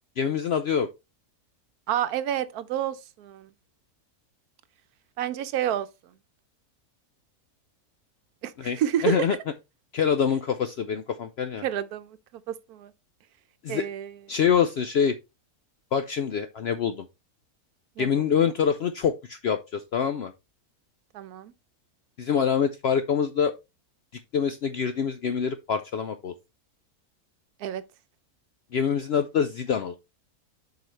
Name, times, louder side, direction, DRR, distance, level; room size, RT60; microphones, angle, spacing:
voice 1, 0.2-0.9 8.6-8.8 9.0-9.4 9.9-11.6 13.6-13.8 14.3-15.2 15.9-17.1 18.0-20.3 22.2-23.5 24.3-26.3 28.7-29.9, left 7 dB, 70° left, 0.6 m, -25 dB
voice 2, 1.9-3.5 5.2-5.9 8.4-9.3 11.6-12.2 12.5-12.9 13.7-14.2 18.0-18.2 21.1-21.5 27.6-27.8, right 10 dB, 85° right, 1.2 m, -29 dB
7.7 x 4.8 x 3.1 m
omnidirectional pair, 1.6 m